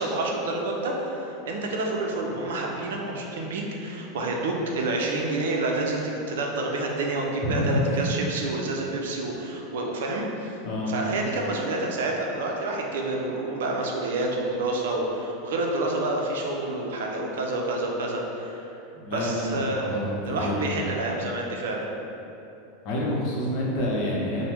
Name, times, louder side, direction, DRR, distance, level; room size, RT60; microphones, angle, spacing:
voice 1, 0.0-10.6 10.9-18.7 19.1-19.9 20.3-21.8, right 2 dB, 80° right, 0 dB, 0.4 m, -28 dB
voice 2, 7.4-8.2 10.6-11.0 18.9-20.8 22.8-24.4, left 1 dB, 55° left, -4 dB, 0.7 m, -28 dB
3.3 x 2.1 x 2.9 m, 2.9 s
supercardioid pair, 120°, 0 cm